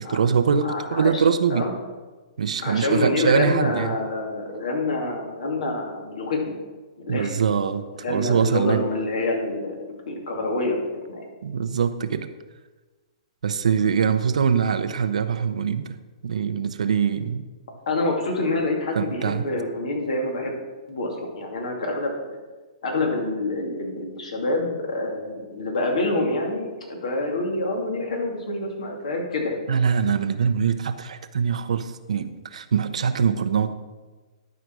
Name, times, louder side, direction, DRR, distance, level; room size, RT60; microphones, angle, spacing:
voice 1, 0.0-1.7 2.4-4.0 7.1-7.8 8.1-8.9 11.4-12.3 13.4-15.9 16.2-17.4 18.9-19.4 29.7-33.7, right 6 dB, 80° right, 10 dB, 0.7 m, -23 dB
voice 2, 0.6-1.2 1.5-1.7 2.6-6.6 7.0-7.4 8.0-10.8 11.0-11.3 17.9-20.5 20.9-22.3 22.8-29.6, left 2 dB, 75° left, 1 dB, 2.7 m, -27 dB
12.0 x 5.0 x 6.2 m, 1.3 s
hypercardioid pair, 140°, 4 cm